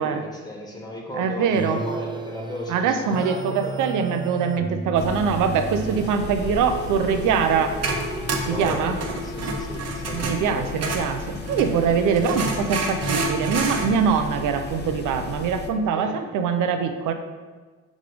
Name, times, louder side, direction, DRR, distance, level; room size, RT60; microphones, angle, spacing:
voice 1, 0.0-3.8 8.5-11.1 12.0-12.2 15.9-16.1, left 1 dB, 15° left, -1 dB, 1.5 m, -36 dB
voice 2, 1.2-1.8 2.7-7.8 8.5-9.0 10.1-17.1, right 6 dB, 85° right, 7 dB, 0.7 m, -23 dB
sound 1, 1.5-9.0, right 3 dB, 15° right, 0.4 m, -34 dB
sound 2, 4.9-15.7, left 5 dB, 35° left, 0.7 m, -35 dB
sound 3, 7.2-11.7 12.2-13.9, right 3 dB, 55° right, 1.0 m, -28 dB
6.3 x 3.5 x 5.1 m, 1.4 s
cardioid pair, 90°, 30 cm